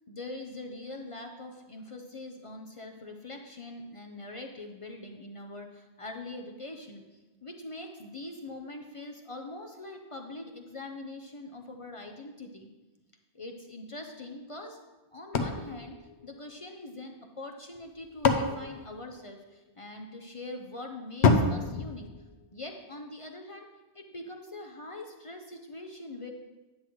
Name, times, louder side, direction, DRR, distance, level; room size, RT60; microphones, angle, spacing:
voice 1, 0.1-12.7 13.3-14.8 15.1-16.0 16.2-22.1 22.5-23.7 23.9-26.3, left 2 dB, 35° left, 3 dB, 0.6 m, -43 dB
sound 1, 15.3-16.9 17.7-19.7 21.2-22.8, left 4 dB, 80° left, 1.0 m, -28 dB
10.0 x 7.8 x 3.1 m, 1.1 s
omnidirectional pair, 1.1 m